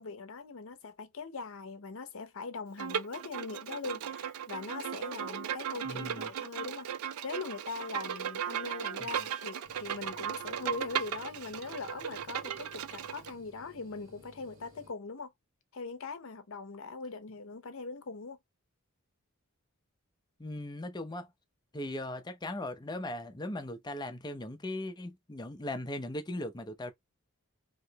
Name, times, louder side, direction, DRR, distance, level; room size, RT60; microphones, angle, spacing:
voice 1, 0.0-6.9 7.2-15.3 15.7-18.4, left 4 dB, 65° left, 0.6 m, -41 dB
Bowed string instrument, 2.8-13.3, right 8 dB, 90° right, 0.4 m, -37 dB
voice 2, 5.8-6.3 9.0-9.1 20.4-21.3 21.7-26.9, left 1 dB, 20° left, 0.6 m, -38 dB
sound 1, 9.6-14.9, equal, 65° right, 1.4 m, -57 dB
3.1 x 2.9 x 2.8 m
head